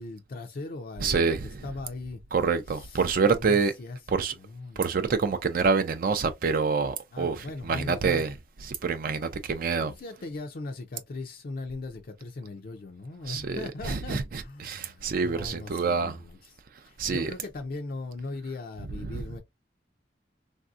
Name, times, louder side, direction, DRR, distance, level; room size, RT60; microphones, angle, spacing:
voice 1, 0.0-2.2 2.7-3.1 3.4-4.8 7.1-8.3 9.5-19.4, left 3 dB, 50° left, 0.5 m, -39 dB
voice 2, 1.0-1.6 2.3-3.7 4.1-4.3 4.8-8.3 8.6-9.9 13.3-16.2 17.0-17.3 19.1-19.2, right 5 dB, 50° right, 0.4 m, -27 dB
3.3 x 2.6 x 2.3 m
head